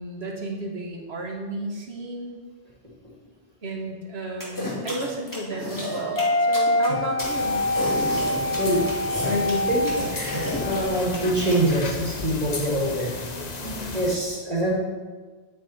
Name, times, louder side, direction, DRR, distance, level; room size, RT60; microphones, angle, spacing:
voice 1, 0.0-2.4 3.6-7.6 13.6-14.0, right 2 dB, 70° right, 1 dB, 1.8 m, -33 dB
sound 1, 4.4-11.6, left 1 dB, 15° left, 2.7 m, -31 dB
sound 2, 5.7-10.8, left 1 dB, 90° left, 1.7 m, -25 dB
sound 3, 7.2-14.2, left 3 dB, 40° left, 1.0 m, -34 dB
voice 2, 9.2-13.2 13.9-14.7, right 1 dB, 35° right, -4 dB, 2.6 m, -25 dB
10.5 x 8.9 x 4.4 m, 1.3 s
omnidirectional pair, 1.1 m